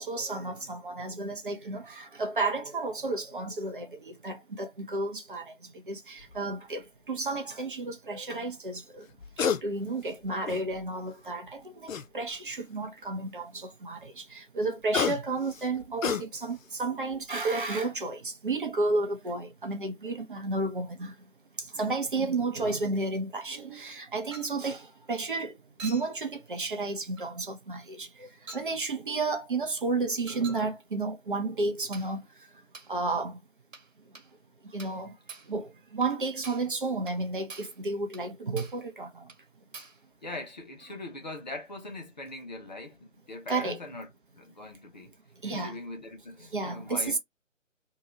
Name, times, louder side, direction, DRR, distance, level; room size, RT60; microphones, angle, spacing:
voice 1, 0.0-5.5 5.9-9.1 9.4-21.1 21.6-25.5 25.8-28.3 28.5-32.2 32.9-33.4 34.7-35.1 35.5-39.3 43.5-43.8 45.4-45.8 46.5-47.2, right 3 dB, 40° right, 0.7 m, -32 dB
sound 1, 6.2-6.4 9.1-9.6 10.1-10.9 11.9-12.5 14.6-16.7 17.1-17.4, left 6 dB, 80° left, 0.6 m, -31 dB
Chink clink, 24.3-24.6 25.8-26.2 27.2-27.3 28.5-28.7 30.3-30.7 31.9-32.2 32.7-32.9 33.7-33.9 34.2-34.3 34.8-35.0 35.3-35.5 36.0-36.1 36.4-36.7 37.1-37.2 37.5-37.8 38.1-38.3 38.6-38.8 39.3-39.4 39.7-40.0, right 4 dB, 75° right, 1.4 m, -46 dB
voice 2, 40.2-44.1 44.3-45.2 45.4-47.2, left 2 dB, 35° left, 0.7 m, -41 dB
2.8 x 2.3 x 2.9 m
figure-of-eight pair, 150°, 39 cm